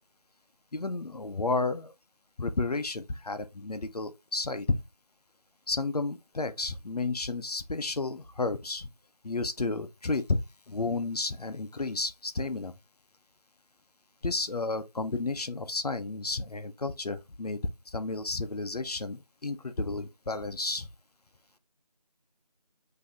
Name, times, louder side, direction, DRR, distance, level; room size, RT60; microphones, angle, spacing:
voice 1, 0.7-1.9 2.4-4.8 5.7-8.9 9.2-10.4 10.7-12.7 14.2-17.6 17.9-20.9, left 3 dB, 65° left, 0.5 m, -32 dB
5.9 x 2.7 x 2.4 m
figure-of-eight pair, 175°, 21 cm